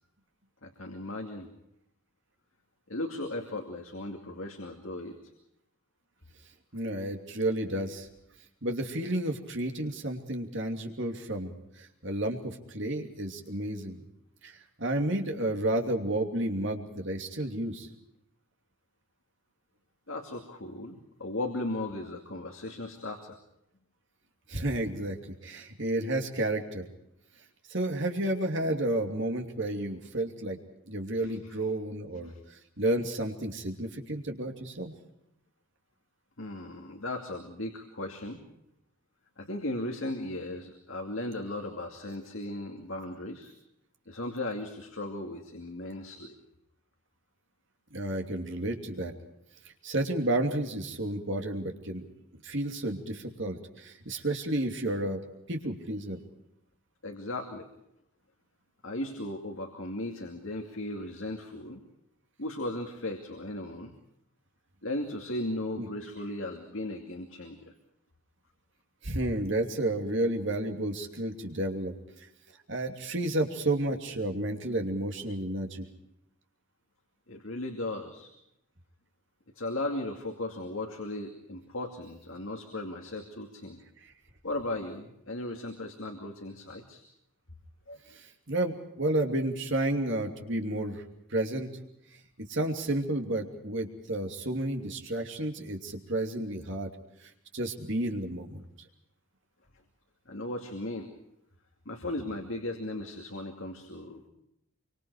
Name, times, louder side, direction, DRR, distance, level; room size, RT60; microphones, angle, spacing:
voice 1, 0.6-1.5 2.9-5.2 20.1-23.4 31.2-31.5 32.2-32.4 36.4-38.4 39.4-43.5 44.1-46.3 57.0-57.7 58.8-61.8 62.4-63.9 64.8-67.7 77.3-78.3 79.6-83.8 84.4-87.0 87.9-88.0 100.3-101.1 101.9-104.3, left 1 dB, 65° left, 3 dB, 2.5 m, -36 dB
voice 2, 6.7-8.1 8.6-14.0 14.4-17.9 24.5-26.8 27.7-30.6 30.9-34.9 47.9-49.1 49.8-52.0 52.4-55.2 55.5-56.2 65.8-65.9 69.0-71.9 72.2-72.3 72.7-75.8 84.0-84.1 88.1-91.0 91.3-91.7 92.5-96.9 97.2-98.6, right 1 dB, 55° right, 3 dB, 2.9 m, -31 dB
27.0 x 24.5 x 4.9 m, 0.80 s
head